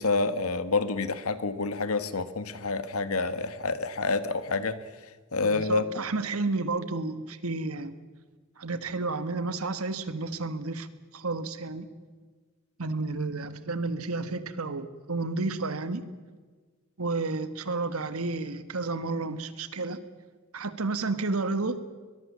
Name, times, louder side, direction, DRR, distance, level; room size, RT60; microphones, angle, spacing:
voice 1, 0.0-4.8 5.3-5.9, left 3 dB, 85° left, 13 dB, 1.4 m, -28 dB
voice 2, 5.4-7.9 8.6-10.9 11.1-11.9 12.8-16.1 17.0-20.0 20.5-21.8, right 3 dB, 85° right, 12 dB, 1.6 m, -31 dB
22.5 x 21.0 x 7.4 m, 1.5 s
head